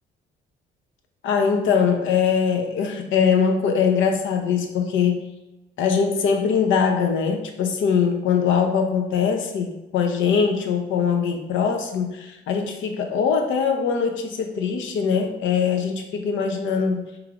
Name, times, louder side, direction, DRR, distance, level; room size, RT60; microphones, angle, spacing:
voice 1, 1.2-5.2 5.8-17.0, left 6 dB, 75° left, 4 dB, 0.6 m, -22 dB
4.8 x 3.1 x 2.4 m, 1.0 s
cardioid pair, 90°, 20 cm